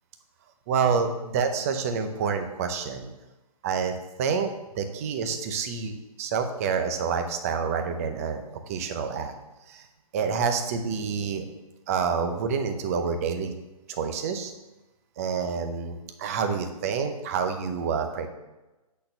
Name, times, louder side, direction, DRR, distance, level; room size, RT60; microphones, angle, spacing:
voice 1, 0.7-3.1 3.6-9.3 9.7-9.9 10.1-11.4 11.9-13.5 13.9-14.5 15.2-18.3, right 6 dB, 25° right, 7 dB, 0.7 m, -28 dB
8.3 x 4.4 x 6.7 m, 1.1 s
hypercardioid pair, 160°, 19 cm